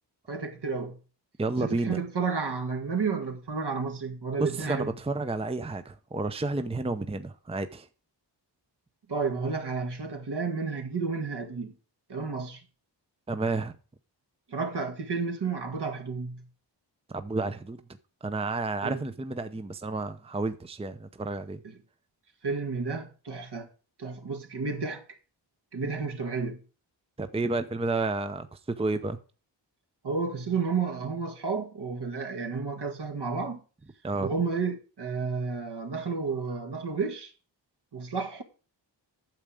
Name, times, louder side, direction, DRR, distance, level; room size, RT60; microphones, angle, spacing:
voice 1, 0.3-1.0 1.6-4.9 9.1-11.7 12.1-12.6 14.5-16.5 18.8-19.0 22.4-23.7 24.0-25.0 25.7-26.6 30.0-33.6 34.2-37.3 37.9-38.4, right 4 dB, 65° right, 2.0 m, -31 dB
voice 2, 1.4-2.0 4.4-7.9 13.3-13.8 17.1-17.8 18.2-21.6 27.2-29.2 34.0-34.3, right 3 dB, 15° right, 0.7 m, -31 dB
9.1 x 7.3 x 4.9 m
wide cardioid pair, 95°, 44 cm